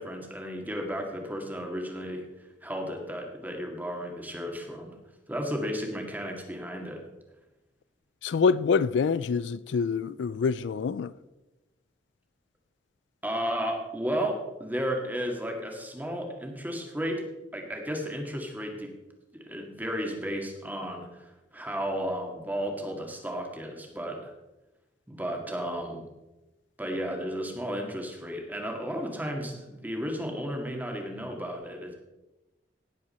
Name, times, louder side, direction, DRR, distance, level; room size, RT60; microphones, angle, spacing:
voice 1, 0.0-2.3 2.6-5.0 5.3-7.0 13.2-17.2 17.5-18.9 19.3-24.3 25.1-26.1 26.8-31.9, equal, 10° right, 1.9 m, -33 dB
voice 2, 8.2-11.1, left 5 dB, 75° left, 0.4 m, -26 dB
17.5 x 7.5 x 4.3 m
head